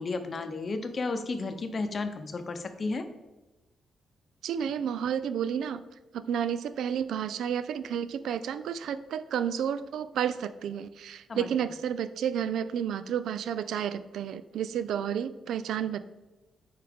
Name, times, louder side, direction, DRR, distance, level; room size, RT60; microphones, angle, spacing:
voice 1, 0.0-3.0 11.3-11.5, left 3 dB, 40° left, 8 dB, 0.7 m, -33 dB
voice 2, 4.4-5.8 6.3-16.0, right 8 dB, 85° right, 13 dB, 0.4 m, -31 dB
8.4 x 4.7 x 3.5 m, 1.1 s
cardioid pair, 115°, 0 cm